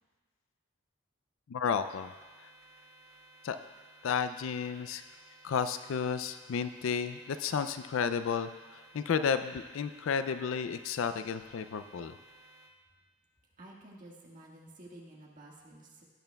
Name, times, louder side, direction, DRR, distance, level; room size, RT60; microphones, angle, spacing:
voice 1, 1.5-2.1 3.4-3.6 4.0-5.0 5.4-12.2, left 6 dB, 65° left, 11 dB, 0.4 m, -32 dB
sound 1, 1.7-12.7, right 2 dB, 90° right, 2.2 m, -58 dB
voice 2, 13.6-16.0, right 1 dB, 40° right, -3 dB, 1.6 m, -51 dB
16.0 x 8.9 x 2.3 m, 1.4 s
head